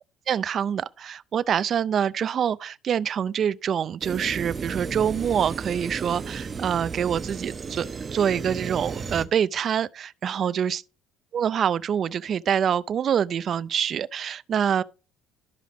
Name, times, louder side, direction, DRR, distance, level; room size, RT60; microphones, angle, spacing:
voice 1, 0.3-7.9 8.1-10.8 11.3-14.8, right 8 dB, 50° right, 0.5 m, -25 dB
sound 1, 4.0-9.3, right 5 dB, 30° right, 1.0 m, -34 dB
13.0 x 5.0 x 3.8 m
cardioid pair, 105°, 0 cm